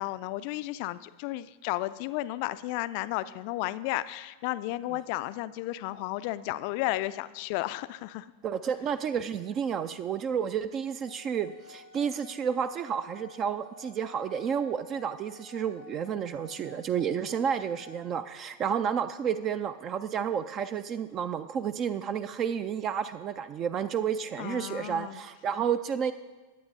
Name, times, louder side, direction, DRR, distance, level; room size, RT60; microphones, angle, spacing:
voice 1, 0.0-8.3 24.4-25.2, left 17 dB, 45° left, 15 dB, 0.4 m, -33 dB
voice 2, 8.4-26.1, right 7 dB, 30° right, 13 dB, 0.4 m, -31 dB
sound 1, 11.0-18.0, left 6 dB, 90° right, 3.0 m, -52 dB
21.0 x 8.5 x 2.7 m, 1.3 s
figure-of-eight pair, 90°, 0 cm